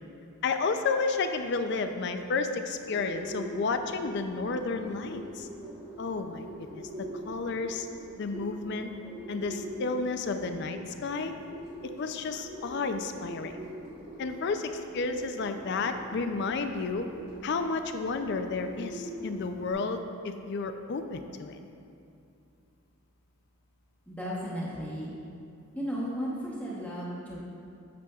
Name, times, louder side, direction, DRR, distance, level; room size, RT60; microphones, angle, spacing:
voice 1, 0.4-5.5 6.0-6.5 6.7-7.9 8.2-8.9 9.3-11.3 11.8-13.7 14.2-17.1 17.4-21.6, left 4 dB, 50° left, 7 dB, 0.4 m, -31 dB
Bird, 2.7-19.7, right 1 dB, 30° right, 1.1 m, -44 dB
voice 2, 24.1-25.1 25.7-27.4, equal, 5° left, -7 dB, 0.8 m, -34 dB
8.3 x 7.5 x 2.3 m, 2.6 s
head